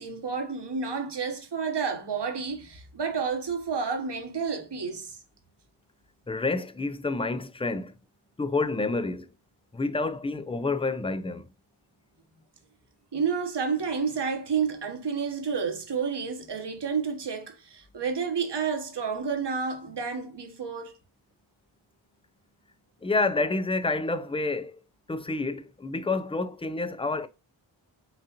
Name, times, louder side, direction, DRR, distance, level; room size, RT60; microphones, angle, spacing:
voice 1, 0.0-5.2 13.1-20.9, right 5 dB, 55° right, 1.1 m, -30 dB
voice 2, 6.3-8.0 8.4-9.3 9.7-11.5 23.0-24.8 25.1-27.3, left 3 dB, 10° left, 0.4 m, -28 dB
6.0 x 2.4 x 2.9 m
cardioid pair, 45°, 50 cm